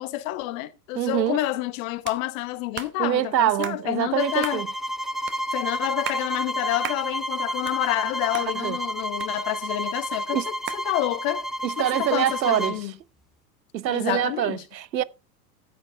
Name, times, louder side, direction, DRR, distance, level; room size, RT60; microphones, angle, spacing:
voice 1, 0.0-4.6 5.5-11.5 11.8-12.9 13.9-14.6, left 16 dB, 55° left, 1.2 m, -29 dB
voice 2, 0.9-1.4 3.0-4.7 8.6-8.8 10.3-10.5 11.6-12.9 13.7-15.0, right 12 dB, 90° right, 0.7 m, -25 dB
sound 1, 2.0-2.2 2.8-2.9 3.6-3.8 4.4-4.6 5.3-5.4 5.9-6.3 6.8-7.0 7.4-8.1 8.3-8.5 9.2-9.8 10.7-10.9, right 10 dB, 25° right, 0.9 m, -35 dB
sound 2, 4.2-12.8, equal, ahead, 0.4 m, -30 dB
13.5 x 9.0 x 3.3 m
hypercardioid pair, 100°, 49 cm